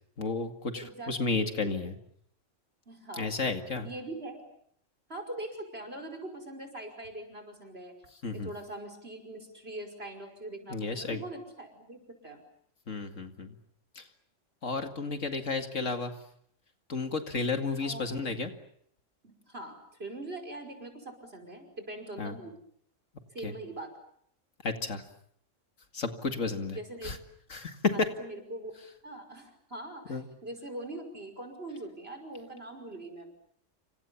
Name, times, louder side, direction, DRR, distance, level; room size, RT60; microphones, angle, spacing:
voice 1, 0.2-1.9 3.2-3.9 8.2-8.5 10.7-11.2 12.9-13.6 14.0-14.1 14.6-16.1 16.9-18.5 22.2-22.3 23.4-23.5 24.6-25.0 25.9-26.8 27.0-27.2 27.5-27.9 30.1-30.2, left 4 dB, 75° left, 6 dB, 2.5 m, -32 dB
voice 2, 0.7-1.9 2.9-3.3 3.8-4.4 5.1-7.9 8.3-12.4 17.8-18.5 19.2-22.5 23.3-23.9 26.7-27.2 27.9-28.7 29.0-33.3, right 1 dB, 50° right, 5 dB, 5.8 m, -42 dB
29.0 x 26.0 x 7.1 m, 0.68 s
omnidirectional pair, 1.3 m